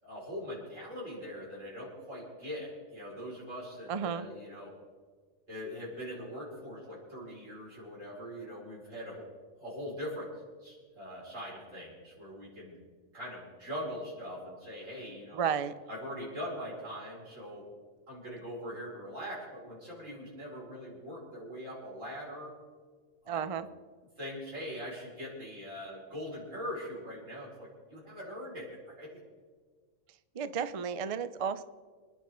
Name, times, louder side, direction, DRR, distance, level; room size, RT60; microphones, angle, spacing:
voice 1, 0.0-4.7 5.5-10.3 10.6-12.9 13.1-15.5 15.9-17.7 18.1-22.5 23.2-23.6 24.2-28.7 29.0-29.2, equal, 75° right, -5 dB, 5.6 m, -42 dB
voice 2, 3.9-4.3 15.3-15.7 23.3-23.7 30.3-31.6, right 7 dB, 50° right, 13 dB, 0.4 m, -32 dB
26.5 x 10.5 x 3.8 m, 1.5 s
omnidirectional pair, 1.4 m